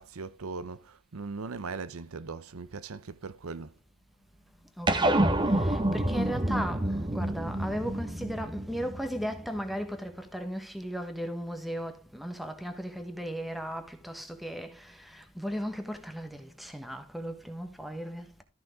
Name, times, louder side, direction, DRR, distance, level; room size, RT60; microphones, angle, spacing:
voice 1, 0.0-3.7, right 4 dB, 75° right, 0.7 m, -39 dB
voice 2, 4.8-18.4, equal, ahead, 1.2 m, -36 dB
sound 1, 4.9-9.6, right 1 dB, 20° right, 0.9 m, -28 dB
13.5 x 5.9 x 3.6 m
head